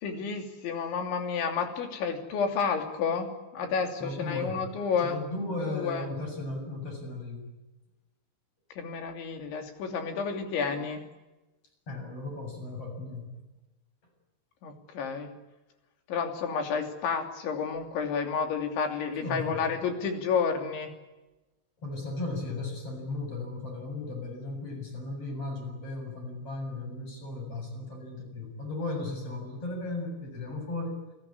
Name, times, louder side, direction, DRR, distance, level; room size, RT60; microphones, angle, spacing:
voice 1, 0.0-5.2 5.6-6.1 8.8-11.0 14.6-15.3 16.1-20.9, left 6 dB, 70° left, 5 dB, 5.3 m, -30 dB
voice 2, 4.0-4.6 5.0-7.5 11.9-13.3 19.2-19.7 21.8-30.9, left 2 dB, 30° left, 3 dB, 8.1 m, -36 dB
30.0 x 17.0 x 9.8 m, 1.1 s
omnidirectional pair, 5.6 m